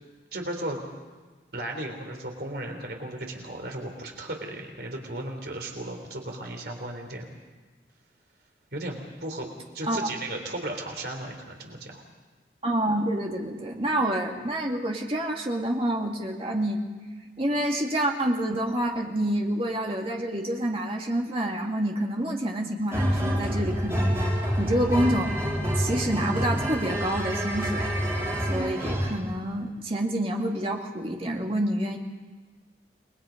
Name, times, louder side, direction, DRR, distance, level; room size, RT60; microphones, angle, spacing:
voice 1, 0.3-0.8 1.5-7.4 8.7-9.5 9.7-12.0, right 1 dB, 60° right, 3 dB, 3.7 m, -35 dB
voice 2, 12.6-16.8 17.4-24.2 24.6-27.9 28.5-32.0, right 1 dB, 30° right, 1 dB, 2.5 m, -28 dB
sound 1, 22.9-29.2, equal, 15° right, 3.7 m, -27 dB
29.5 x 21.5 x 5.3 m, 1.3 s
head